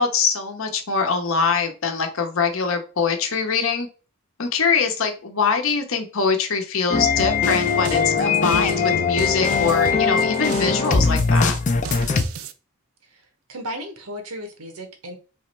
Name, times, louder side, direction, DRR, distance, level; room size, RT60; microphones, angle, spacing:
voice 1, 0.0-3.9 4.4-11.5, left 5 dB, 65° left, 0.8 m, -23 dB
sound 1, 6.9-12.2, left 5 dB, 35° left, 0.5 m, -21 dB
sound 2, 7.2-12.5, right 7 dB, 70° right, 0.4 m, -36 dB
voice 2, 13.5-15.2, equal, 90° right, 1.2 m, -34 dB
3.5 x 3.1 x 4.4 m
head